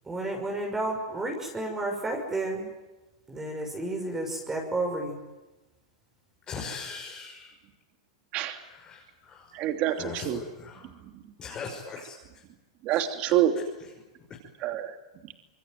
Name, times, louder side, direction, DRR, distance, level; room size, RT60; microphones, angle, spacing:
voice 1, 0.1-2.7 3.3-5.1, right 2 dB, 15° right, 2 dB, 6.3 m, -31 dB
voice 2, 6.5-7.5 8.5-9.5 10.0-10.9 11.4-12.2 12.9-13.0, left 5 dB, 25° left, -1 dB, 5.9 m, -40 dB
voice 3, 9.5-10.4 12.8-13.5 14.6-14.9, right 12 dB, 40° right, 7 dB, 3.0 m, -26 dB
26.5 x 23.0 x 9.5 m, 1.1 s
hypercardioid pair, 135°, 3 cm